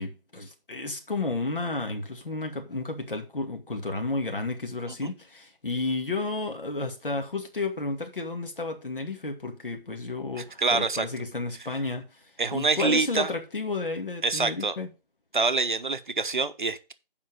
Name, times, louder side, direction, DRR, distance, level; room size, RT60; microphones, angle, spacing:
voice 1, 0.0-14.9, left 3 dB, 65° left, 2.4 m, -32 dB
voice 2, 10.4-11.1 12.4-13.3 14.2-14.8 15.3-16.9, right 4 dB, 55° right, 0.9 m, -26 dB
7.4 x 5.2 x 6.5 m
figure-of-eight pair, 165°, 29 cm